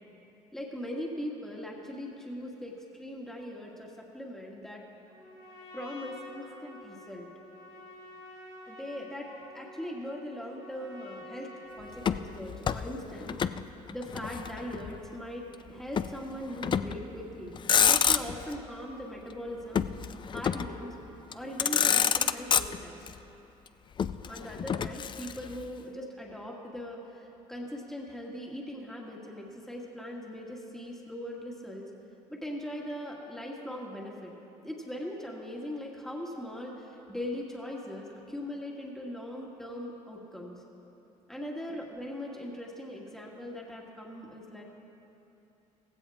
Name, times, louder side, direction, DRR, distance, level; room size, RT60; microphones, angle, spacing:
voice 1, 0.5-4.8 5.7-7.3 8.7-13.4 13.9-17.5 17.8-19.9 20.3-21.0 21.3-23.0 24.3-31.9 32.3-34.3 34.6-40.6 41.3-44.6, left 1 dB, 5° left, -2 dB, 1.9 m, -40 dB
Trumpet, 5.1-12.4, left 1 dB, 85° left, 2.8 m, -49 dB
Motor vehicle (road), 12.0-13.6 13.9-15.0 16.0-16.2 16.6-17.1 17.5-18.6 19.7-20.8 21.3-21.4 21.6-23.1 24.0-25.6, left 7 dB, 35° left, 0.4 m, -28 dB
16.0 x 15.5 x 3.5 m, 2.9 s
cardioid pair, 90°, 14 cm